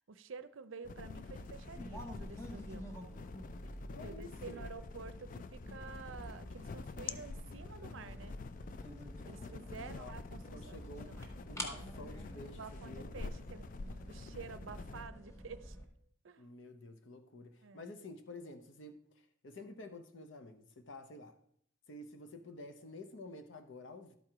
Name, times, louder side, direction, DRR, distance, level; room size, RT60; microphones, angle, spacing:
voice 1, 0.1-2.9 4.0-8.4 9.2-11.4 12.4-15.8 16.2-16.5 17.6-17.9, right 4 dB, 75° right, 0.6 m, -50 dB
sound 1, 0.8-15.1, left 4 dB, 40° left, 0.3 m, -48 dB
sound 2, 1.3-15.9, equal, 15° left, 1.0 m, -49 dB
voice 2, 3.9-4.7 9.8-10.2 10.5-11.2 11.5-13.1 16.4-21.4 21.9-24.2, left 2 dB, 65° left, 0.7 m, -50 dB
12.0 x 4.5 x 4.9 m
head